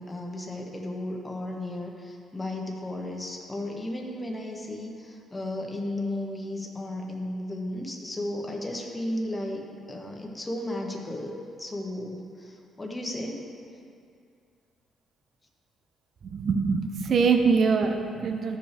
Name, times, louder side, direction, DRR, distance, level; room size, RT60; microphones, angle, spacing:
voice 1, 0.0-13.4, left 1 dB, 20° left, 0 dB, 1.3 m, -34 dB
voice 2, 16.2-18.6, right 5 dB, 55° right, 5 dB, 0.7 m, -23 dB
14.0 x 5.4 x 3.5 m, 2.4 s
cardioid pair, 90°, 0 cm